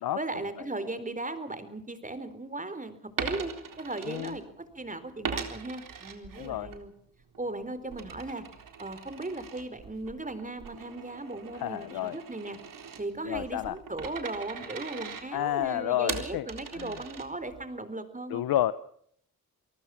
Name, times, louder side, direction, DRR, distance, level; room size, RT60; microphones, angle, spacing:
voice 1, 0.2-6.9 7.4-8.4 8.8-12.6 13.0-18.5, right 2 dB, 20° right, 12 dB, 4.1 m, -37 dB
Coin (dropping), 3.1-4.8 5.2-6.8 7.2-17.6, right 6 dB, 65° right, 3.9 m, -40 dB
voice 2, 6.4-6.7 11.6-12.2 13.2-13.8 15.3-16.5 16.7-16.9 18.3-18.7, left 13 dB, 80° left, 15 dB, 0.8 m, -30 dB
28.5 x 19.0 x 5.9 m, 0.65 s
cardioid pair, 60°, 36 cm